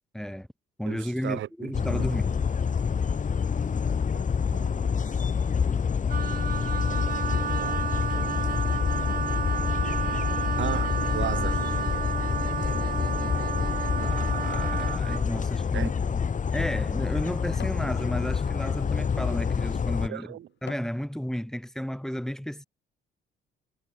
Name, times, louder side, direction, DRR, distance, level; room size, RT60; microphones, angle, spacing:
voice 1, 0.1-0.5 0.8-2.4 14.0-16.2 16.5-22.7, equal, ahead, 1.9 m, -33 dB
voice 2, 0.9-2.2 4.1-4.3 4.5-5.0 7.6-7.8 8.1-8.4 10.6-11.6 15.7-15.9 20.1-20.5, right 12 dB, 75° right, 2.1 m, -36 dB
sound 1, 1.7-20.1, left 6 dB, 40° left, 2.2 m, -27 dB
Wind instrument woodwind instrument, 6.1-15.3, right 7 dB, 45° right, 2.0 m, -32 dB
sound 2, 13.2-14.9 15.3-17.9 18.5-18.8 19.5-19.6 20.1-21.0 21.5-21.6, left 9 dB, 60° left, 5.9 m, -49 dB
cardioid pair, 90°, 20 cm